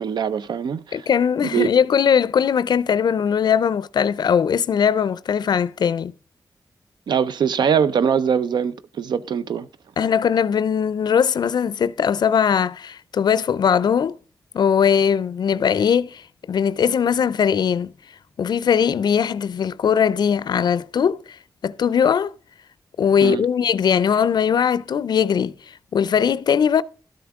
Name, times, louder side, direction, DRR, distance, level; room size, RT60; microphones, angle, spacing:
voice 1, 0.0-1.1 1.5-1.8 7.1-9.7 23.2-23.4, right 7 dB, 85° right, 0.5 m, -22 dB
voice 2, 0.9-6.1 10.0-14.2 14.5-17.9 18.4-21.4 21.6-22.3 23.0-26.8, left 7 dB, 75° left, 0.4 m, -20 dB
12.0 x 9.4 x 3.5 m
cardioid pair, 60°, 7 cm